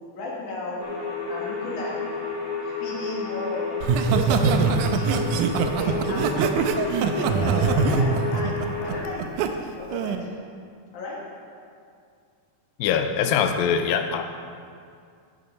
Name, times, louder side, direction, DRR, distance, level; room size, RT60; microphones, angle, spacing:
voice 1, 0.1-0.8 1.3-2.0 2.6-3.8 4.2-5.2 5.7-6.8 7.2-10.3 10.9-11.2, left 2 dB, 55° left, -4 dB, 3.4 m, -35 dB
sound 1, 0.8-9.0, left 4 dB, 35° left, 1.5 m, -31 dB
Laughter, 3.8-9.5 9.9-10.2, right 5 dB, 90° right, 1.8 m, -23 dB
voice 2, 12.8-14.4, left 7 dB, 80° left, 7 dB, 2.3 m, -23 dB
15.5 x 6.8 x 5.3 m, 2.3 s
omnidirectional pair, 4.3 m